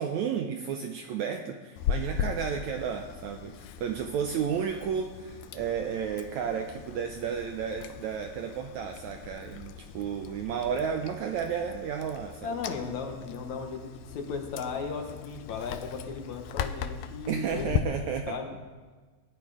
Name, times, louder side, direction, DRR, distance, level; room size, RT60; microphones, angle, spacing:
voice 1, 0.0-12.6 17.3-18.4, right 7 dB, 80° right, 4 dB, 1.7 m, -32 dB
Chewing mastication, 1.8-17.8, left 9 dB, 80° left, 1.7 m, -38 dB
voice 2, 12.4-17.7 18.3-18.6, left 5 dB, 65° left, 4 dB, 2.3 m, -36 dB
17.0 x 11.0 x 4.9 m, 1.4 s
omnidirectional pair, 4.0 m